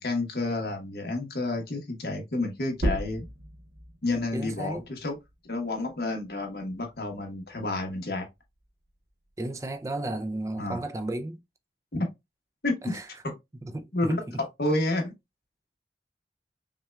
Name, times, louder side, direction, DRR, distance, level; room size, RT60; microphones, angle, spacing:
voice 1, 0.0-3.3 4.0-5.2 5.5-8.3 10.6-10.8 11.9-12.1 12.6-13.0 13.2-13.3 13.9-14.2 14.6-15.1, left 2 dB, 65° left, 1.1 m, -30 dB
sound 1, 2.7-7.9 8.3-10.1, equal, 65° right, 1.0 m, -37 dB
voice 2, 4.3-4.8 9.4-11.4 12.8-13.1 13.6-14.4, right 1 dB, 20° right, 0.4 m, -33 dB
5.6 x 2.2 x 2.3 m
head